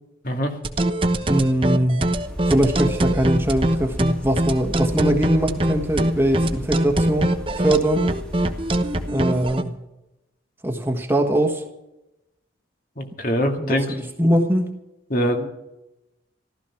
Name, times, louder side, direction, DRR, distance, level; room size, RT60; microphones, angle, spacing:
voice 1, 0.2-0.6 13.0-14.0 15.1-15.5, equal, 45° left, 4 dB, 2.0 m, -23 dB
sound 1, 0.6-9.6, right 1 dB, 30° right, 1.0 m, -22 dB
voice 2, 1.3-2.1 2.5-8.1 9.1-9.8 10.6-11.6 13.6-14.7, right 1 dB, 10° right, 3 dB, 1.4 m, -22 dB
sound 2, 2.1-9.1, left 1 dB, 5° left, 1.9 m, -34 dB
15.0 x 13.5 x 5.8 m, 0.93 s
head